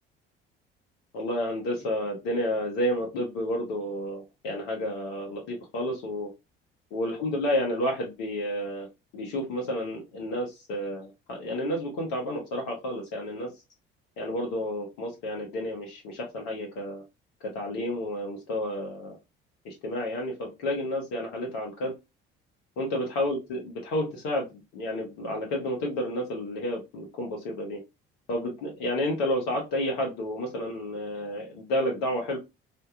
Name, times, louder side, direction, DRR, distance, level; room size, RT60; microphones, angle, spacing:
voice 1, 1.1-6.3 6.9-8.9 9.1-13.5 14.2-17.0 17.4-19.2 19.6-21.9 22.8-27.8 28.3-32.4, left 1 dB, 60° left, 0 dB, 0.9 m, -31 dB
3.4 x 2.1 x 2.4 m, 0.23 s
figure-of-eight pair, 50°, 30 cm